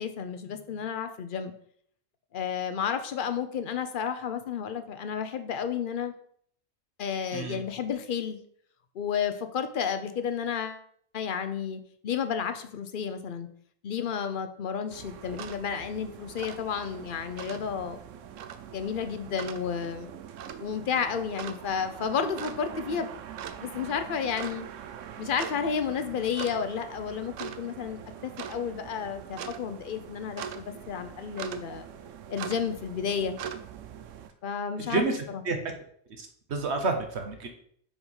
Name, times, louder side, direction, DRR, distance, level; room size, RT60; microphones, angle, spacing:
voice 1, 0.0-1.5 2.3-6.1 7.0-8.4 8.9-10.8 11.1-13.5 13.8-18.0 18.7-20.1 20.6-23.1 23.6-24.7 25.2-31.9 32.3-33.4 34.4-35.0, left 7 dB, 50° left, 9 dB, 0.7 m, -31 dB
sound 1, 14.9-34.3, right 8 dB, 75° right, 1.0 m, -42 dB
voice 2, 34.8-35.6 36.2-37.5, right 3 dB, 60° right, 5 dB, 1.3 m, -30 dB
5.1 x 4.8 x 5.4 m, 0.63 s
omnidirectional pair, 1.3 m